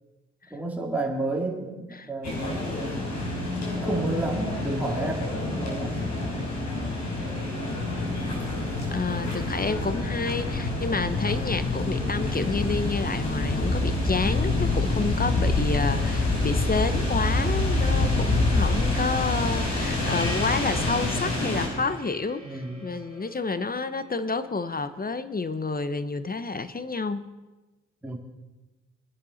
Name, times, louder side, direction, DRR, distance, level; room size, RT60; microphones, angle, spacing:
voice 1, 0.5-2.9 3.7-6.4 6.7-6.9 8.6-9.0 17.8-18.3 22.4-22.9 28.0-28.2, right 2 dB, 5° right, -1 dB, 2.8 m, -32 dB
sound 1, 2.2-21.7, left 2 dB, 55° left, 4.9 m, -27 dB
voice 2, 8.9-27.3, left 3 dB, 30° left, 12 dB, 1.0 m, -29 dB
Gong, 20.0-24.8, left 1 dB, 85° left, 4.4 m, -40 dB
21.5 x 10.5 x 4.2 m, 1.1 s
supercardioid pair, 50°, 32 cm